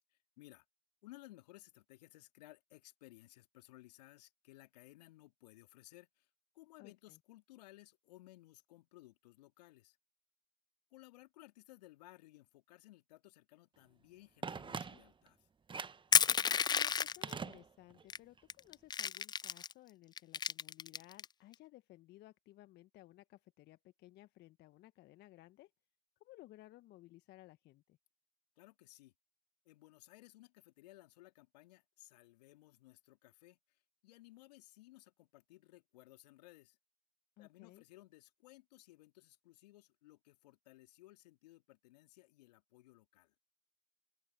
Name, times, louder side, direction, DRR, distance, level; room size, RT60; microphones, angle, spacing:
voice 1, 1.0-6.3 6.5-10.0 10.9-15.5 28.6-29.1 29.6-36.8 37.4-43.3, left 18 dB, 70° left, 2.9 m, -60 dB
voice 2, 6.8-7.2 16.7-25.7 26.2-28.0 37.4-37.8, left 16 dB, 55° left, 1.4 m, -59 dB
Telephone, 14.4-15.3 15.7-16.1 17.2-18.1 18.4-18.5, right 5 dB, 25° right, 1.3 m, -43 dB
Crushing, 16.1-17.3 18.1-18.2 18.5-19.7 20.2-21.2, left 7 dB, 20° left, 0.4 m, -31 dB
open air
hypercardioid pair, 65°, 21 cm